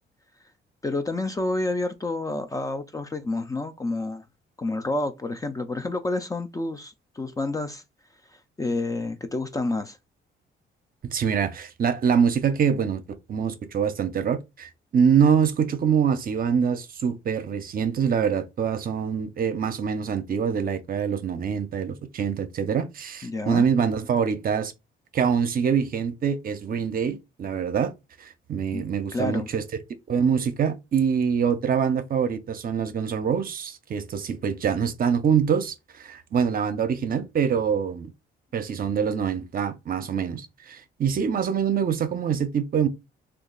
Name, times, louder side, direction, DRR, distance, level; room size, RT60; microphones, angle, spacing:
voice 1, 0.8-4.2 4.6-7.8 8.6-10.0 23.2-23.6 28.7-28.8 29.1-29.5, left 2 dB, 15° left, 0.3 m, -29 dB
voice 2, 11.1-13.0 13.3-24.7 25.1-27.9 28.2-29.6 30.1-38.1 38.5-42.9, right 7 dB, 45° right, 0.6 m, -25 dB
2.8 x 2.3 x 3.7 m
cardioid pair, 90°, 20 cm